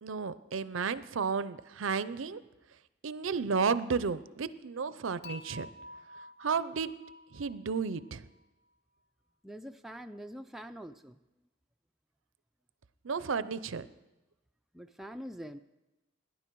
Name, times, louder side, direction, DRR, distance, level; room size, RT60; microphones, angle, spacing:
voice 1, 0.0-2.4 3.0-5.7 6.4-6.9 7.3-8.2 13.0-13.9, right 5 dB, 65° right, 15 dB, 0.5 m, -32 dB
Dishes pots and pans / Chink clink, 5.2-8.4, left 2 dB, 50° left, 1.0 m, -49 dB
voice 2, 9.4-11.2 14.7-15.6, equal, ahead, 5 dB, 0.3 m, -44 dB
18.0 x 10.5 x 4.6 m, 1.0 s
head